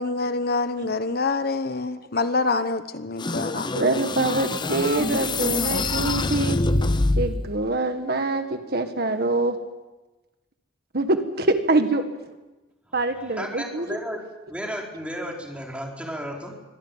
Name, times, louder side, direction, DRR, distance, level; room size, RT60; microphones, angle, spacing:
voice 1, 0.0-3.7, left 3 dB, 55° left, 11 dB, 1.1 m, -26 dB
sound 1, 3.2-7.5, left 2 dB, 25° left, 0.8 m, -25 dB
voice 2, 3.7-6.6 7.2-9.6 10.9-12.0 12.9-14.0, right 2 dB, 55° right, 7 dB, 1.8 m, -24 dB
voice 3, 13.2-16.5, equal, 5° right, 0 dB, 4.4 m, -34 dB
24.5 x 17.0 x 9.2 m, 1.1 s
head